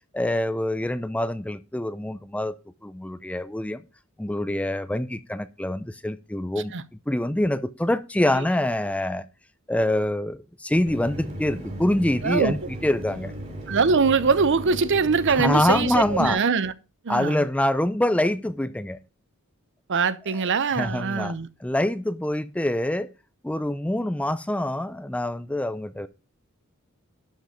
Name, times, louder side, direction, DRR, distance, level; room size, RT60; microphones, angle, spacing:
voice 1, 0.1-2.6 2.8-3.8 4.2-6.7 7.1-9.3 9.7-13.3 15.3-16.4 17.1-19.0 20.3-23.1 23.4-26.1, left 1 dB, 5° left, 0.5 m, -25 dB
Mechanisms, 10.9-16.3, right 1 dB, 35° right, 3.9 m, -36 dB
voice 2, 12.2-12.5 13.7-16.7 17.0-17.5 19.9-21.5, right 5 dB, 55° right, 0.6 m, -22 dB
11.5 x 5.3 x 5.0 m
head